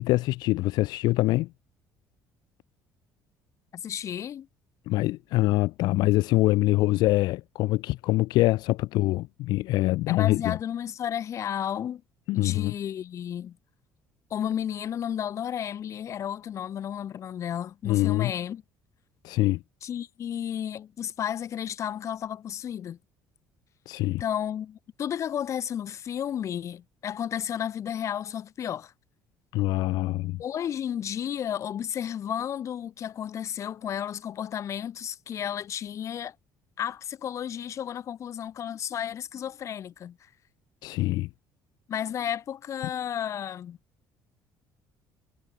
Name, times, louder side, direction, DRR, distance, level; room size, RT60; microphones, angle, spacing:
voice 1, 0.0-1.5 4.9-10.6 12.3-12.7 17.8-18.3 19.2-19.6 23.9-24.2 29.5-30.4 40.8-41.3, left 18 dB, 75° left, 0.3 m, -24 dB
voice 2, 3.7-4.5 10.1-12.0 12.3-13.6 14.3-18.6 19.8-23.0 24.2-28.9 30.4-36.3 36.8-40.2 41.9-43.8, left 9 dB, 45° left, 0.8 m, -32 dB
cardioid pair, 120°, 7 cm